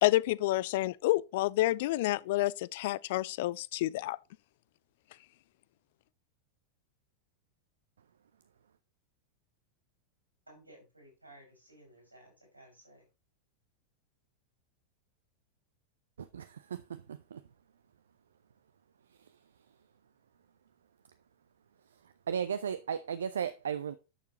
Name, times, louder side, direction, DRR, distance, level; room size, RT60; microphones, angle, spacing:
voice 1, 0.0-4.2, left 17 dB, 50° left, 0.3 m, -29 dB
voice 2, 10.5-13.1, right 1 dB, 85° right, 5.5 m, -57 dB
voice 3, 16.2-17.4 19.1-19.4 21.9-24.0, right 7 dB, 65° right, 0.5 m, -36 dB
11.0 x 6.7 x 3.0 m
figure-of-eight pair, 90°, 0 cm